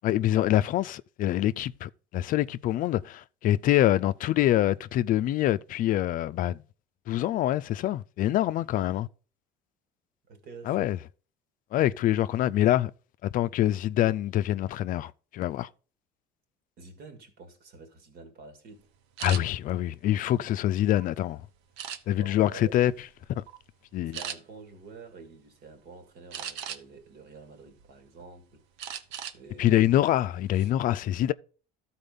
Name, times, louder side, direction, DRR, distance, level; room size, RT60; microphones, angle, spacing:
voice 1, 0.0-6.6 7.1-9.1 10.7-11.0 11.7-12.9 13.2-15.7 19.2-21.4 22.1-22.9 23.3-23.4 23.9-24.2 29.6-31.3, left 13 dB, 50° left, 0.4 m, -25 dB
voice 2, 10.3-11.0 16.8-18.9 22.1-22.8 24.2-29.0 29.3-29.8, right 4 dB, 65° right, 2.1 m, -48 dB
sound 1, 19.2-19.4 20.0-21.0 21.8-22.3 22.9-23.1 23.5-23.6 24.1-24.4 26.3-27.0 27.5-28.3 28.8-29.4 29.7-29.9 30.3-30.7, right 9 dB, 85° right, 0.9 m, -38 dB
13.0 x 4.3 x 5.3 m
cardioid pair, 120°, 17 cm